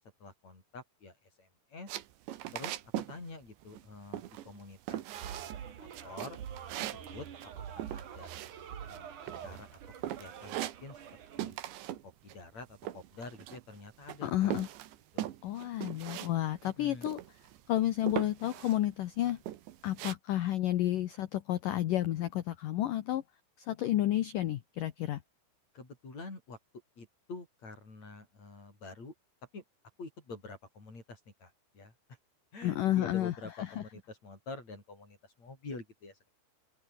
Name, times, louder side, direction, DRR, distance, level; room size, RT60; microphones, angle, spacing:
voice 1, 0.2-1.9 2.5-2.8 3.1-6.4 6.8-8.3 8.9-11.0 11.4-11.6 12.0-14.6 15.1-15.3 16.8-17.1 25.7-26.6 27.0-29.1 29.5-29.6 30.0-31.9 32.5-36.3, left 3 dB, 35° left, 8.4 m, -48 dB
sound 1, 1.9-3.2 3.4-3.9 4.1-4.6 4.9-5.6 5.9-9.0 9.3-9.8 10.0-11.1 11.4-12.0 12.3-13.8 14.1-16.3 16.6-16.7 17.0-17.6 18.1-18.8 19.2-20.1, right 13 dB, 80° right, 3.7 m, -40 dB
sound 2, 5.1-11.5, right 8 dB, 50° right, 3.3 m, -46 dB
voice 2, 14.2-14.7 15.4-17.2 17.7-19.4 19.8-23.2 23.6-25.2 32.6-33.8, left 13 dB, 70° left, 2.0 m, -31 dB
omnidirectional pair, 5.2 m